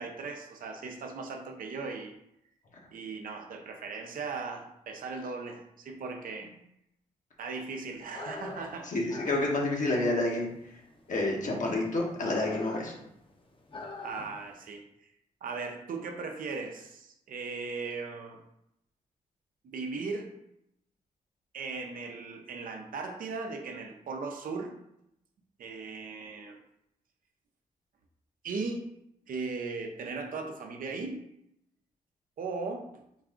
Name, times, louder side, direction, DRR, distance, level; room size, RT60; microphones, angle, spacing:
voice 1, 0.0-2.1 2.9-6.5 7.4-9.0 14.0-14.8 15.4-18.4 19.6-20.3 21.5-24.7 25.6-26.6 28.4-28.8 29.3-31.2 32.4-32.9, right 4 dB, 70° right, 4 dB, 0.6 m, -38 dB
sound 1, 8.1-14.6, left 2 dB, 35° left, 0.8 m, -43 dB
voice 2, 8.8-10.5 11.1-13.0, left 2 dB, 60° left, -2 dB, 1.1 m, -29 dB
3.9 x 2.4 x 3.7 m, 0.80 s
supercardioid pair, 50°, 15 cm